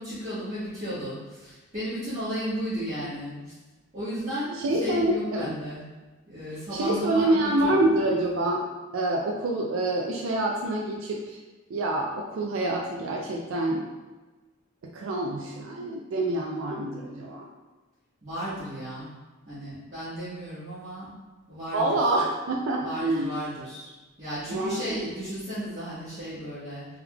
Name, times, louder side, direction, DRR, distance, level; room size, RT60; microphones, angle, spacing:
voice 1, 0.0-3.5 3.9-5.8 6.3-7.8 18.2-19.1 19.4-21.2 21.5-22.2 22.8-23.9 24.2-26.9, equal, 35° right, -15 dB, 1.3 m, -34 dB
voice 2, 4.5-5.5 6.7-8.6 8.9-11.4 11.7-13.9 14.9-17.4 21.7-23.3 24.5-25.0, right 1 dB, 85° right, -1 dB, 0.4 m, -26 dB
3.4 x 3.3 x 2.3 m, 1.2 s
head